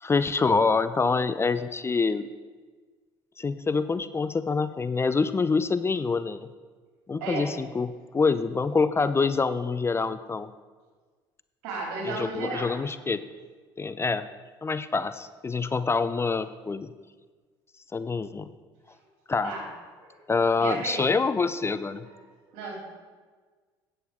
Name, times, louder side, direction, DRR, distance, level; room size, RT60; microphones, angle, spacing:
voice 1, 0.0-2.3 3.4-6.4 7.1-10.5 12.0-13.2 13.8-14.3 14.6-16.9 17.9-18.5 19.3-19.5 20.3-22.1, left 4 dB, 20° left, 13 dB, 0.5 m, -26 dB
voice 2, 7.2-7.5 11.6-12.7 19.4-19.6 20.0-20.2 20.6-21.1 22.0-22.1 22.5-22.8, right 3 dB, 75° right, -2 dB, 3.6 m, -33 dB
9.8 x 7.9 x 4.9 m, 1.4 s
hypercardioid pair, 65°, 11 cm